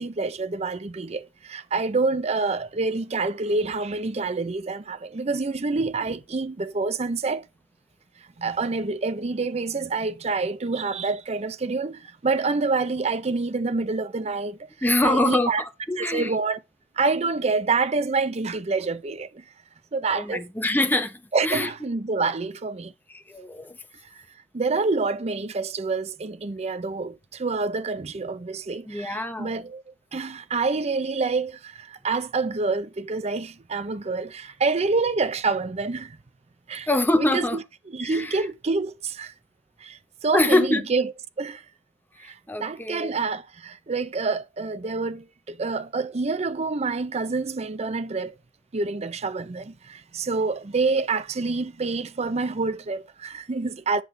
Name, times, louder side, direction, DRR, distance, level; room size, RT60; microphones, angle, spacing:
voice 1, 0.0-7.4 8.4-14.7 15.0-15.6 16.0-16.6 17.0-19.4 19.9-20.4 21.3-22.9 24.5-29.8 30.1-36.2 36.7-36.9 37.2-37.6 37.9-39.3 39.8-41.1 41.4-41.6 42.2-48.3 48.7-54.0, right 3 dB, 35° right, 0.5 m, -27 dB
voice 2, 14.8-16.3 20.1-21.7 23.1-23.8 28.9-29.5 36.9-37.6 38.0-38.4 40.3-40.8 42.2-43.1, left 1 dB, 10° left, 0.9 m, -24 dB
9.7 x 5.5 x 3.2 m
head